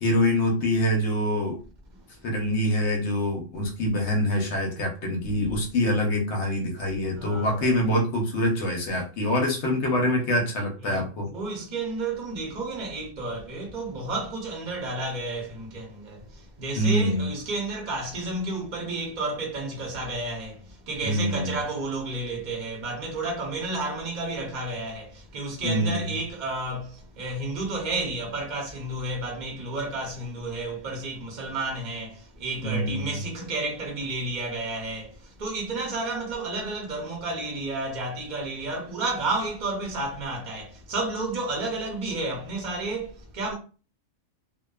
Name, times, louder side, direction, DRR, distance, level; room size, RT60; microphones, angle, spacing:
voice 1, 0.0-1.6 2.2-11.3 16.7-17.3 21.0-21.6 25.6-26.2 32.6-33.2, left 1 dB, 65° left, 0.9 m, -25 dB
voice 2, 7.1-7.8 10.8-43.5, right 2 dB, 40° right, 0.8 m, -31 dB
2.6 x 2.2 x 2.2 m
omnidirectional pair, 1.3 m